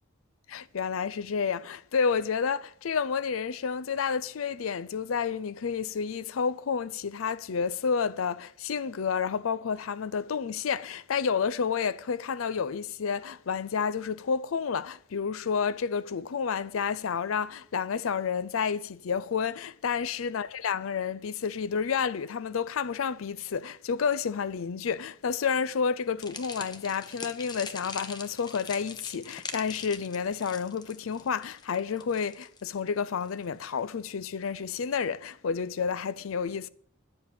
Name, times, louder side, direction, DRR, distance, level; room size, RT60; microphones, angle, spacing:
voice 1, 0.5-36.7, left 6 dB, 85° left, 0.5 m, -30 dB
sound 1, 26.2-33.4, left 4 dB, 20° left, 1.0 m, -42 dB
10.5 x 7.7 x 8.5 m
head